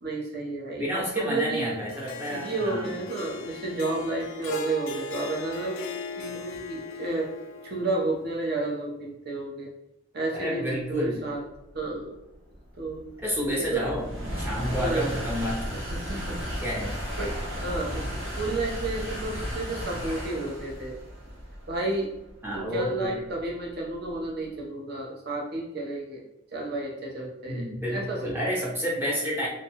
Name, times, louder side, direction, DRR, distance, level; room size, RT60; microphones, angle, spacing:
voice 1, 0.0-1.8 2.3-5.8 6.2-7.3 7.6-9.7 10.1-11.4 11.7-12.2 12.8-13.0 13.6-13.9 14.8-15.1 15.9-16.4 17.1-20.9 21.7-22.1 22.5-26.2 26.5-28.4, right 2 dB, 50° right, 0 dB, 0.6 m, -31 dB
voice 2, 0.8-2.9 10.3-11.3 13.2-14.0 14.4-15.6 16.6-16.9 22.4-23.2 27.5-29.5, equal, 10° right, -5 dB, 0.6 m, -30 dB
Harp, 1.9-8.3, left 2 dB, 75° left, 0.4 m, -37 dB
sound 1, 11.4-24.5, equal, 75° right, 0.8 m, -35 dB
2.6 x 2.2 x 2.8 m, 0.89 s
head